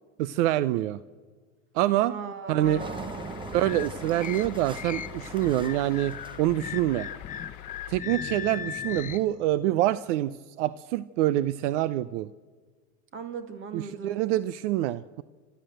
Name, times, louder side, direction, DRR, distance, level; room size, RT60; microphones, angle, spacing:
voice 1, 0.2-1.0 1.7-2.1 2.5-2.8 3.5-7.1 7.9-12.3 13.7-15.2, right 14 dB, 75° right, 17 dB, 0.7 m, -26 dB
voice 2, 2.1-3.4 13.1-14.2, right 5 dB, 35° right, 9 dB, 2.6 m, -38 dB
sound 1, 2.6-8.0, left 18 dB, 75° left, 0.8 m, -45 dB
Engine, 2.8-7.3, right 4 dB, 15° right, 1.0 m, -41 dB
sound 2, 3.5-9.2, left 9 dB, 20° left, 0.9 m, -38 dB
29.0 x 12.5 x 7.9 m, 1.5 s
supercardioid pair, 130°, 36 cm